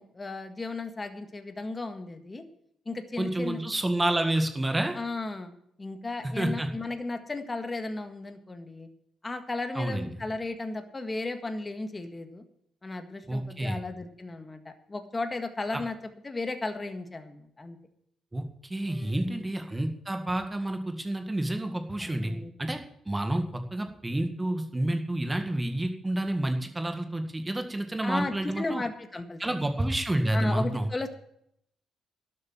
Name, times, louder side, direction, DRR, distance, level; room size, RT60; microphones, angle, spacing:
voice 1, 0.0-2.4 2.8-3.6 4.9-5.5 5.8-8.9 9.2-12.4 12.8-15.9 16.2-17.8 18.9-19.4 22.0-22.5 28.0-29.7 30.3-31.1, left 3 dB, 25° left, 7 dB, 1.7 m, -35 dB
voice 2, 3.2-5.0 6.4-6.7 9.8-10.1 13.3-13.8 18.3-22.3 22.6-22.8 23.1-28.8 29.4-30.9, right 1 dB, 15° right, 5 dB, 1.9 m, -29 dB
12.0 x 8.5 x 7.4 m, 0.72 s
cardioid pair, 90°, 0 cm